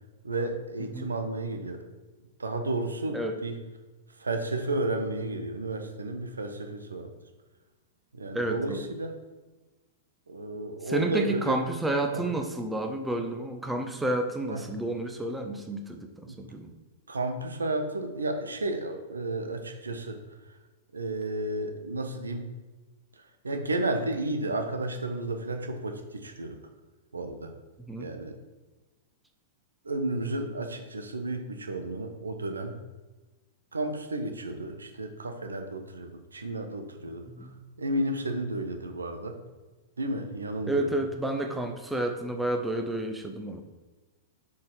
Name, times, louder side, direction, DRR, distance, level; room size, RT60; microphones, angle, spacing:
voice 1, 0.2-1.8 2.4-3.5 4.2-7.1 8.1-9.2 10.3-11.6 12.1-12.2 14.5-14.6 16.3-16.4 17.1-20.2 20.9-22.5 23.4-26.6 27.1-27.5 28.0-28.3 29.8-32.8 33.7-37.2 37.8-39.4 40.0-40.9, right 2 dB, 80° right, 6 dB, 0.9 m, -32 dB
voice 2, 8.3-8.8 10.9-16.7 27.9-28.1 37.3-37.5 40.7-43.6, right 1 dB, 5° right, 4 dB, 0.8 m, -30 dB
6.9 x 4.9 x 4.8 m, 1.2 s
figure-of-eight pair, 100°, 0 cm